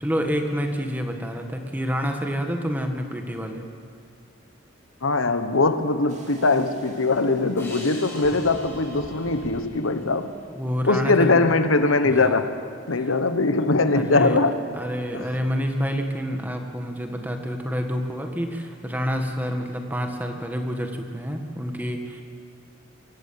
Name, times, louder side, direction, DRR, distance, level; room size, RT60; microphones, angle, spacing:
voice 1, 0.0-3.6 8.3-8.4 10.5-11.3 12.1-12.3 13.0-13.1 13.9-14.4 14.7-22.2, equal, 10° right, 1.8 m, -28 dB
voice 2, 5.0-10.3 10.8-12.5 12.9-14.6 15.1-15.3, left 3 dB, 75° left, 1.2 m, -21 dB
sound 1, 6.1-9.6, right 1 dB, 35° right, 2.7 m, -43 dB
sound 2, 7.6-10.9, left 1 dB, 15° left, 5.2 m, -44 dB
23.5 x 15.0 x 8.7 m
head